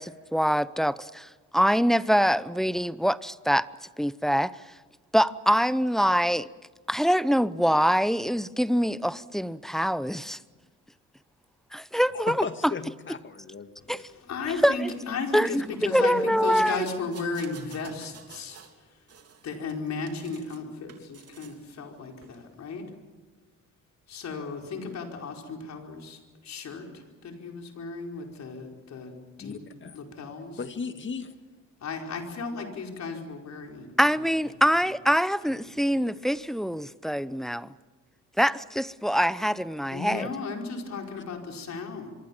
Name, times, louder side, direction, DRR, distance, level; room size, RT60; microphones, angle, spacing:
voice 1, 0.0-3.7 4.0-4.5 5.1-6.5 6.9-10.4 11.7-12.3 13.9-14.0 14.6-14.7 15.3-15.6 15.9-16.9 34.0-37.7 38.4-40.3, equal, ahead, 15 dB, 0.8 m, -24 dB
voice 2, 12.1-14.0 29.4-30.0 30.6-31.4 41.1-41.2, left 5 dB, 40° left, 8 dB, 2.0 m, -36 dB
voice 3, 14.1-18.6 18.9-19.0 19.4-22.9 24.1-29.6 29.9-30.6 31.8-34.3 34.8-34.9 35.6-35.8 39.9-42.1, left 4 dB, 60° left, 2 dB, 5.0 m, -35 dB
sound 1, 16.6-18.8 19.1-20.6 20.9-21.6 22.2-22.4, right 6 dB, 55° right, 3.2 m, -50 dB
26.0 x 24.0 x 7.3 m, 1.3 s
cardioid pair, 90°, 30 cm